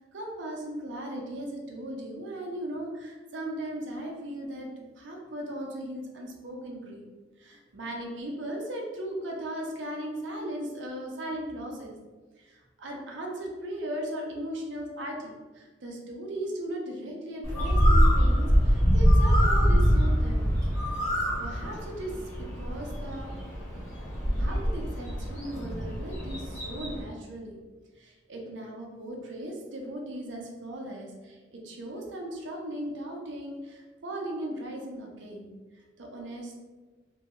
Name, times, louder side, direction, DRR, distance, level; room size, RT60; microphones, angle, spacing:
voice 1, 0.1-7.0 7.4-12.0 12.4-20.6 20.9-21.0 21.4-23.4 23.7-23.8 24.3-27.6 28.0-36.6, right 1 dB, 85° right, 0 dB, 0.6 m, -37 dB
Bird, 17.4-27.0, equal, 15° left, 0.9 m, -24 dB
2.6 x 2.2 x 3.0 m, 1.3 s
head